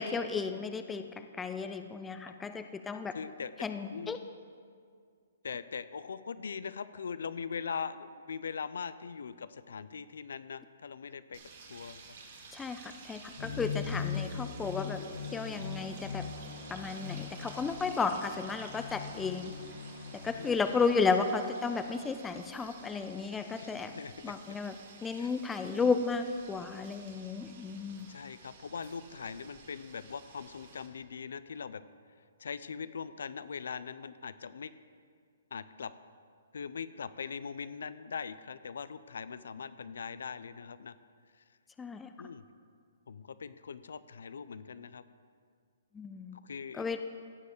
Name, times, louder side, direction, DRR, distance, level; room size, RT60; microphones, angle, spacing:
voice 1, 0.0-3.1 3.6-4.2 12.5-15.0 15.3-16.3 16.7-19.5 20.1-23.9 24.2-24.8 25.0-28.1 41.8-42.1 45.9-46.4 46.7-47.0, left 4 dB, 10° left, 8 dB, 0.5 m, -33 dB
voice 2, 3.1-4.2 5.4-11.4 11.7-12.0 20.3-20.6 23.6-24.3 25.2-25.3 28.1-31.8 32.4-34.7 35.5-35.9 36.5-41.0 42.2-42.4 43.1-45.0 46.4-47.0, left 6 dB, 80° left, 14 dB, 0.5 m, -41 dB
sound 1, 11.3-30.9, right 4 dB, 55° right, 2.3 m, -53 dB
sound 2, 13.4-20.9, left 6 dB, 60° left, 1.9 m, -40 dB
16.0 x 5.6 x 6.7 m, 2.1 s
hypercardioid pair, 155°, 0 cm